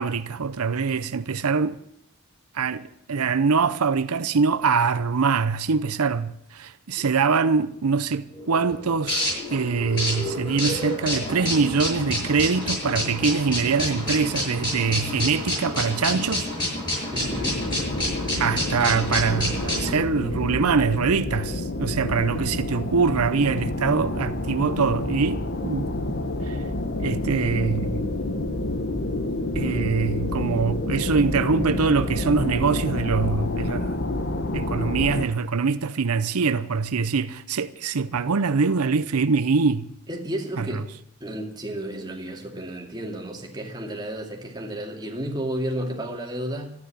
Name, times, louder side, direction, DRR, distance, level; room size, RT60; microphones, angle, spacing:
voice 1, 0.0-1.8 2.5-16.5 18.4-25.9 26.5-26.6 27.0-28.0 29.5-34.0 34.5-39.9 40.6-40.8, right 5 dB, 85° right, 0.7 m, -24 dB
sound 1, 8.3-19.9, left 1 dB, 20° left, 7.8 m, -28 dB
voice 2, 17.1-17.7 40.1-40.9 41.2-46.7, right 1 dB, 20° right, 2.4 m, -32 dB
sound 2, 17.2-35.2, left 2 dB, 50° left, 1.2 m, -28 dB
13.5 x 9.6 x 9.8 m
head